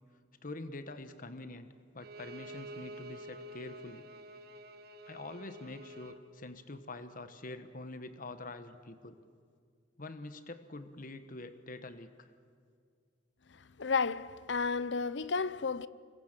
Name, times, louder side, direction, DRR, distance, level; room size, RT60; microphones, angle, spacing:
voice 1, 0.4-1.7 1.9-4.0 5.1-9.2 10.0-12.3, left 2 dB, 50° left, 1.3 m, -45 dB
Bowed string instrument, 2.0-6.2, right 1 dB, 60° right, 1.6 m, -48 dB
voice 2, 13.8-15.9, left 5 dB, 70° left, 0.7 m, -32 dB
26.5 x 22.0 x 7.5 m
head